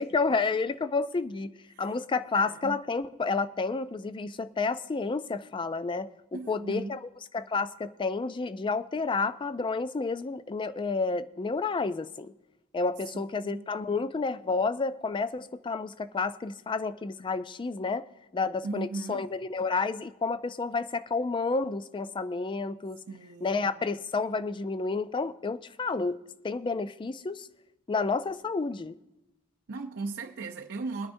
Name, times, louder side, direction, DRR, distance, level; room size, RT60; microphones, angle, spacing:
voice 1, 0.0-1.5 1.8-12.3 12.7-18.1 18.3-23.0 23.4-27.5 27.9-29.0, left 4 dB, 20° left, 0.3 m, -30 dB
voice 2, 2.3-2.8 6.3-7.0 13.1-13.6 18.6-19.3 23.1-23.9 29.7-31.1, right 3 dB, 50° right, 0.5 m, -38 dB
22.0 x 9.7 x 2.6 m
head